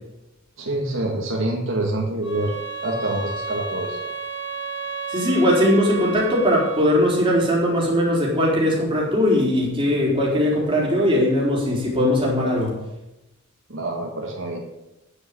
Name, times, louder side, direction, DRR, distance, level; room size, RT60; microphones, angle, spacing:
voice 1, 0.6-2.6 2.8-4.0 13.7-14.6, right 1 dB, 65° right, -1 dB, 2.0 m, -26 dB
sound 1, 2.2-7.0, right 5 dB, 60° left, 3.2 m, -32 dB
voice 2, 5.1-12.8, left 1 dB, 25° right, -3 dB, 4.1 m, -20 dB
9.7 x 7.8 x 8.4 m, 0.92 s
head